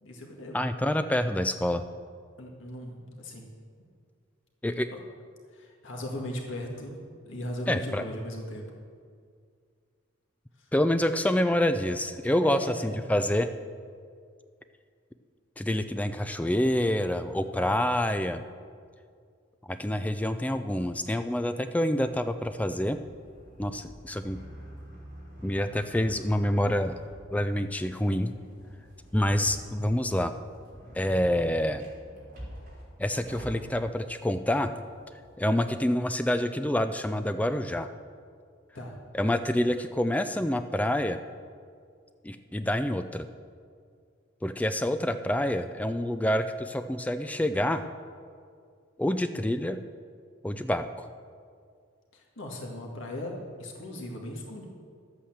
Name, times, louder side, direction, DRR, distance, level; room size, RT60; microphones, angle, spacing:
voice 1, 0.0-0.6 2.4-3.5 5.5-8.6 10.6-10.7 12.4-13.0 38.7-39.0 52.1-54.6, left 1 dB, 65° left, -1 dB, 1.9 m, -38 dB
voice 2, 0.5-1.8 4.6-4.9 7.7-8.0 10.7-13.5 15.6-18.4 19.6-23.0 23.6-24.4 25.4-27.0 27.3-28.3 29.1-30.3 30.9-31.8 33.0-34.7 35.4-37.9 39.1-41.2 42.2-43.3 44.4-47.8 49.0-49.8 50.4-51.1, left 1 dB, 5° left, 9 dB, 0.3 m, -27 dB
sound 1, 22.0-35.4, equal, 40° right, 3.2 m, -48 dB
11.5 x 8.5 x 7.3 m, 2.1 s
head